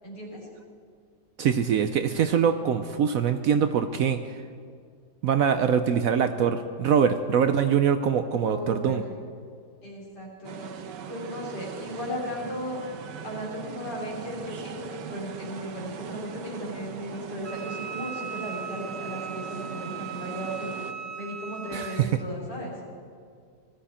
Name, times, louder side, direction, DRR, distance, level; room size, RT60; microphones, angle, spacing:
voice 1, 0.0-0.5 2.0-2.2 8.3-9.2 9.8-12.8 13.2-20.9 21.2-22.7, equal, 70° left, -3 dB, 4.6 m, -36 dB
voice 2, 1.4-4.2 5.2-9.0 21.7-22.1, right 7 dB, 65° right, 9 dB, 0.9 m, -23 dB
sound 1, 10.4-20.9, right 7 dB, 85° right, 1.5 m, -41 dB
Wind instrument woodwind instrument, 17.4-22.0, right 7 dB, 20° right, 2.7 m, -38 dB
20.0 x 14.0 x 4.3 m, 2.1 s
omnidirectional pair, 1.8 m